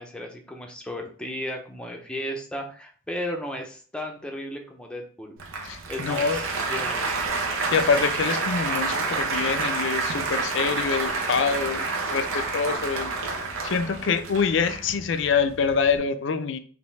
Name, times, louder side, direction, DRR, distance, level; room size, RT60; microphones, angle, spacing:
voice 1, 0.0-7.1, left 1 dB, 5° left, 2 dB, 0.6 m, -35 dB
Applause, 5.4-16.0, right 3 dB, 75° right, 0.8 m, -29 dB
voice 2, 5.6-6.4 7.7-11.9 12.1-13.1 13.6-16.6, left 5 dB, 60° left, 10 dB, 0.4 m, -25 dB
5.2 x 2.7 x 3.2 m, 0.43 s
head